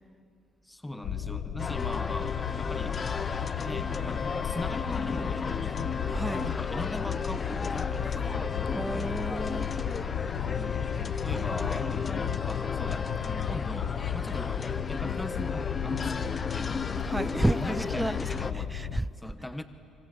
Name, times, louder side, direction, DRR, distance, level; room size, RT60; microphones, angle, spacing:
voice 1, 0.6-3.0 3.6-5.9 6.4-9.2 10.5-16.7 17.5-19.6, left 1 dB, 10° left, 1.3 m, -40 dB
sound 1, 1.0-19.0, left 9 dB, 70° left, 0.9 m, -34 dB
sound 2, 1.6-18.5, left 4 dB, 30° left, 0.8 m, -34 dB
voice 2, 6.1-6.6 8.7-9.7 17.0-19.1, right 1 dB, 10° right, 0.5 m, -31 dB
25.5 x 24.5 x 7.8 m
cardioid pair, 90°, 0 cm